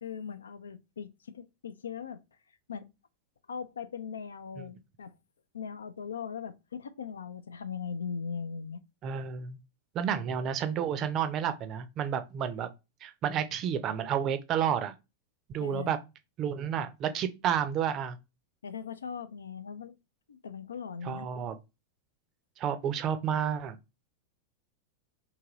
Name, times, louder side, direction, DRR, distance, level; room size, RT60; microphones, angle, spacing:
voice 1, 0.0-2.2 2.7-2.9 3.5-5.2 5.5-8.8 15.6-16.0 18.6-20.0 20.3-21.3, left 6 dB, 70° left, 0.3 m, -39 dB
voice 2, 9.0-9.6 9.9-12.7 13.0-14.9 15.5-16.0 16.4-18.2 21.0-21.6 22.6-23.8, right 8 dB, 35° right, 0.5 m, -31 dB
3.6 x 2.9 x 2.9 m
figure-of-eight pair, 90°, 0 cm